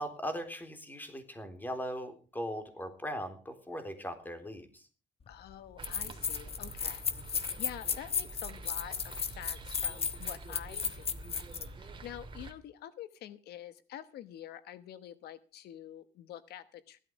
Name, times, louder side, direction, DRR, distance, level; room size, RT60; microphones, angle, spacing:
voice 1, 0.0-4.9, equal, 10° left, 7 dB, 3.6 m, -39 dB
voice 2, 5.3-7.0 7.3-11.1 11.8-17.0, left 11 dB, 70° left, 13 dB, 1.2 m, -47 dB
sound 1, 5.3-5.4 5.8-11.7, left 6 dB, 35° left, 1.3 m, -34 dB
sound 2, 5.8-12.5, right 3 dB, 30° right, 2.8 m, -47 dB
16.0 x 12.5 x 5.2 m, 0.36 s
cardioid pair, 110°, 17 cm